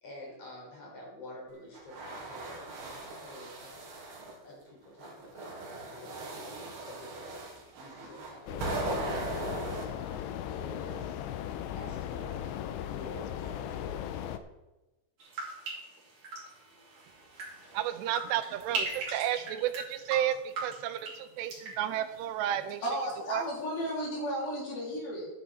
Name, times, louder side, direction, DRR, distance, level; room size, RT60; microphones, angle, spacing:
voice 1, 0.0-3.9 4.4-5.6 5.9-7.4 7.7-11.2 11.4-12.7 12.9-14.0, left 1 dB, 35° left, -3 dB, 4.8 m, -48 dB
sound 1, 1.7-4.4 5.0-9.8, right 2 dB, 70° right, 4.2 m, -39 dB
sound 2, 8.5-14.4, left 10 dB, 85° left, 3.0 m, -37 dB
sound 3, 15.2-23.1 23.4-23.9, right 3 dB, 50° right, 4.4 m, -41 dB
voice 2, 17.7-22.8 23.3-23.4, right 11 dB, 85° right, 10 dB, 2.9 m, -32 dB
voice 3, 22.8-25.3, equal, 60° left, -4 dB, 5.3 m, -34 dB
11.5 x 9.7 x 4.3 m, 1.0 s
omnidirectional pair, 5.0 m